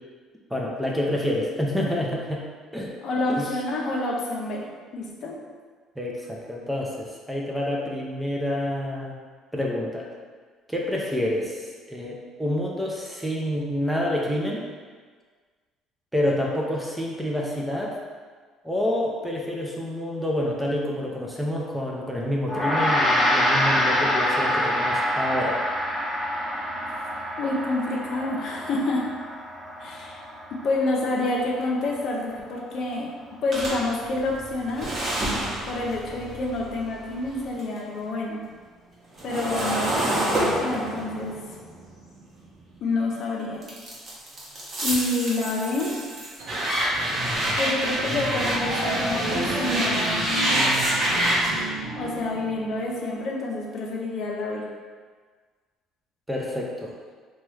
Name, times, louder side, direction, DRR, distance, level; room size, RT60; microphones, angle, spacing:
voice 1, 0.5-2.4 2.7-2.9 3.3-3.5 6.0-9.2 9.5-10.1 10.7-14.7 16.1-18.0 18.6-25.6 56.3-56.9, left 1 dB, 5° right, -3 dB, 0.4 m, -28 dB
voice 2, 3.0-4.7 4.9-5.4 27.4-29.0 29.8-30.2 30.6-33.1 33.4-34.9 35.7-38.4 39.2-41.4 42.8-43.6 44.8-45.9 47.6-50.5 52.0-54.6, left 2 dB, 55° left, -2 dB, 0.5 m, -28 dB
Gong, 22.5-32.0, equal, 20° left, 0.9 m, -26 dB
sound 1, 33.5-37.8 38.1-43.0 43.6-51.6, right 1 dB, 40° right, 0.8 m, -27 dB
sound 2, 46.4-53.1, right 2 dB, 80° right, 0.6 m, -34 dB
2.9 x 2.3 x 3.1 m, 1.6 s
cardioid pair, 115°, 0 cm